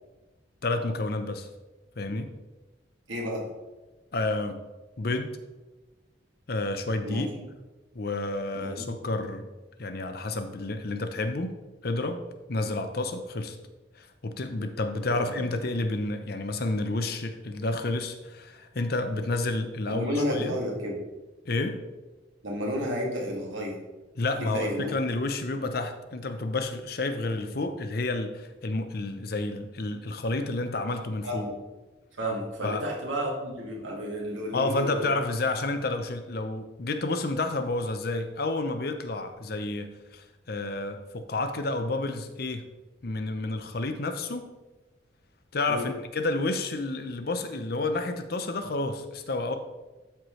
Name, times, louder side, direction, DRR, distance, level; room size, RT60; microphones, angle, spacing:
voice 1, 0.6-1.5 2.0-2.3 4.1-4.6 5.0-5.4 6.5-7.3 7.9-9.5 9.8-11.6 11.8-12.2 12.5-13.6 13.9-20.6 21.5-21.8 24.2-31.4 32.6-32.8 34.5-42.6 43.0-44.5 45.5-49.5, left 2 dB, 55° left, 8 dB, 0.7 m, -30 dB
voice 2, 3.1-3.6 7.0-7.4 8.5-8.9 15.1-15.5 19.9-21.1 22.4-23.8 24.4-24.9 31.2-31.6 32.2-35.1 45.7-45.9, equal, 85° right, -2 dB, 2.2 m, -32 dB
12.5 x 4.6 x 3.2 m, 1.2 s
head